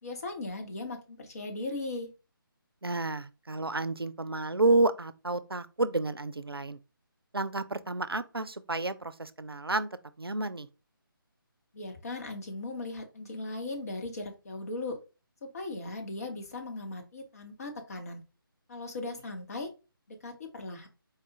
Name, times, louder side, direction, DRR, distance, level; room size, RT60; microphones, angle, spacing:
voice 1, 0.0-2.1 11.7-15.0 15.4-18.2 18.7-19.7 20.1-20.9, left 2 dB, 40° left, 1.1 m, -38 dB
voice 2, 2.8-6.8 7.3-9.9 10.2-10.7, right 2 dB, 90° right, 0.4 m, -30 dB
4.3 x 2.4 x 3.8 m
figure-of-eight pair, 145°, 12 cm